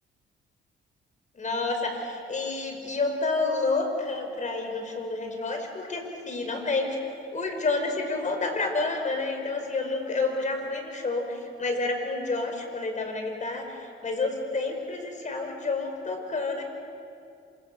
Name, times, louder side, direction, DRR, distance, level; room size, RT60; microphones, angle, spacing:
voice 1, 1.4-16.6, left 3 dB, 40° left, 4 dB, 5.5 m, -29 dB
28.0 x 26.5 x 7.0 m, 2.4 s
cardioid pair, 90°, 20 cm